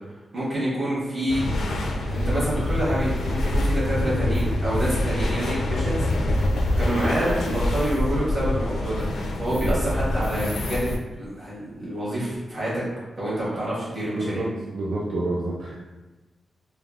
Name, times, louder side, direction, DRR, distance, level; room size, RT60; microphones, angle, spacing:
voice 1, 0.3-1.4 2.0-6.3 6.8-9.0 9.4-12.9 13.2-14.5, right 1 dB, 30° right, -9 dB, 1.2 m, -27 dB
sound 1, 1.3-11.0, left 1 dB, 85° left, 0.3 m, -25 dB
voice 2, 9.4-9.8 14.2-14.5 14.7-15.8, right 2 dB, 70° right, -5 dB, 0.4 m, -29 dB
3.3 x 2.2 x 2.3 m, 1.2 s
wide cardioid pair, 170°, 0 cm